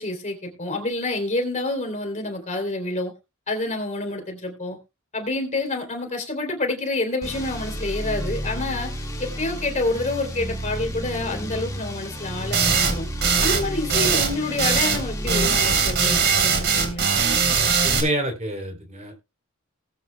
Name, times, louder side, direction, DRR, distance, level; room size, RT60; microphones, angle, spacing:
voice 1, 0.0-3.1 3.5-4.8 5.1-8.9 9.2-13.1 13.4-17.1, left 2 dB, 35° left, 3.3 m, -28 dB
sound 1, 7.2-15.5, equal, 15° left, 2.0 m, -32 dB
sound 2, 12.5-12.9 13.2-13.6 13.9-14.3 14.6-15.0 15.3-18.0, right 5 dB, 55° right, 3.6 m, -20 dB
voice 2, 17.8-19.3, right 1 dB, 35° right, 3.4 m, -28 dB
19.5 x 9.1 x 2.3 m
head